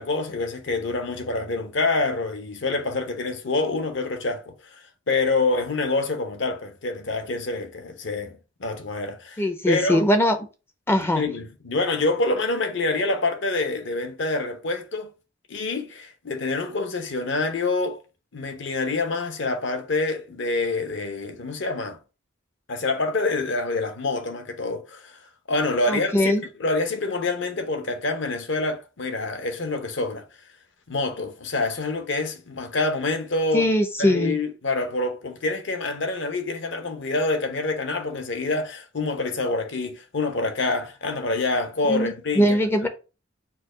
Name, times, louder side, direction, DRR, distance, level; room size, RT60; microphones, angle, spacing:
voice 1, 0.0-10.0 11.2-15.1 15.5-18.0 18.3-22.0 22.7-25.2 25.5-26.3 26.6-30.2 30.9-33.7 34.0-42.6, left 3 dB, 60° left, 0.8 m, -26 dB
voice 2, 9.4-10.4 10.9-11.2 25.9-26.4 33.5-34.3 41.8-42.9, equal, 10° left, 0.4 m, -21 dB
4.5 x 2.2 x 4.7 m
head